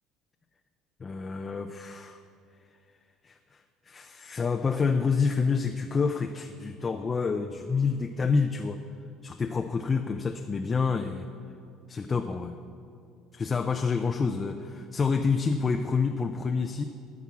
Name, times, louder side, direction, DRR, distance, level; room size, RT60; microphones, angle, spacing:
voice 1, 1.0-2.2 3.2-8.8 9.2-11.3 11.9-12.5 13.3-16.8, left 5 dB, 25° left, 6 dB, 0.5 m, -28 dB
13.5 x 6.1 x 7.2 m, 2.5 s
cardioid pair, 130°, 0 cm